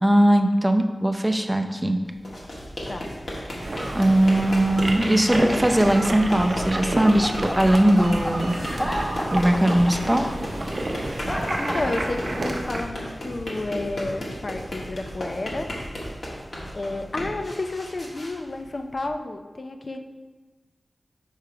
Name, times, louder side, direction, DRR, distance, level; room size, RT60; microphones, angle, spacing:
voice 1, 0.0-2.0 3.9-8.6 9.3-10.3, right 1 dB, 15° right, 5 dB, 0.6 m, -20 dB
sound 1, 2.1-19.1, equal, 70° left, 1.5 m, -34 dB
sound 2, 3.6-12.8, right 1 dB, 60° right, 0.7 m, -31 dB
sound 3, 5.2-12.6, equal, 20° left, 1.5 m, -31 dB
voice 2, 11.6-15.7 16.7-20.0, left 2 dB, 55° left, 5 dB, 0.5 m, -31 dB
5.1 x 4.5 x 4.7 m, 1.3 s
cardioid pair, 50°, 0 cm